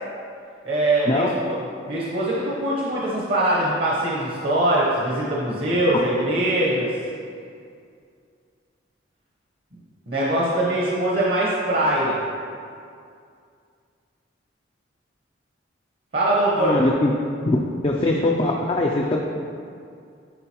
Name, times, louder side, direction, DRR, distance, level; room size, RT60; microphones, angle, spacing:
voice 1, 0.6-1.6 1.9-6.9 10.1-12.2 16.1-16.8, right 1 dB, 50° right, -5 dB, 0.9 m, -22 dB
voice 2, 16.6-17.1 17.5-19.2, left 2 dB, 30° left, -1 dB, 0.4 m, -21 dB
10.5 x 3.9 x 2.9 m, 2.3 s
head